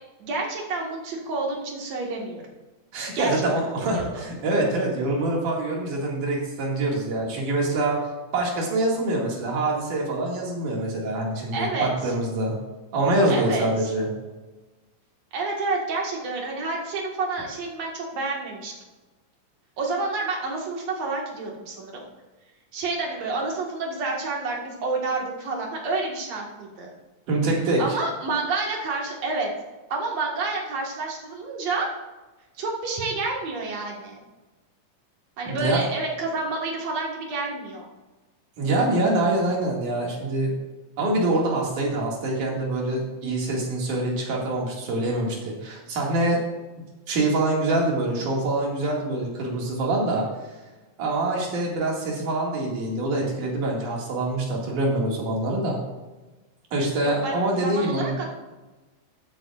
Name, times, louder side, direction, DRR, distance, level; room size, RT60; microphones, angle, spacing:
voice 1, 0.2-2.4 3.2-3.5 3.9-4.3 11.5-12.1 13.3-13.9 15.3-18.7 19.8-22.0 22.7-26.9 27.8-29.5 29.9-31.9 32.6-34.2 35.4-37.9 57.0-58.3, right 3 dB, 60° right, -1 dB, 2.8 m, -29 dB
voice 2, 2.9-8.0 8.3-12.5 12.9-14.1 27.3-27.8 35.5-35.8 38.6-40.5 41.0-46.4 47.1-50.2 51.0-55.8 56.7-58.2, right 2 dB, 80° right, -2 dB, 3.7 m, -25 dB
15.0 x 9.0 x 2.5 m, 1.2 s
omnidirectional pair, 3.5 m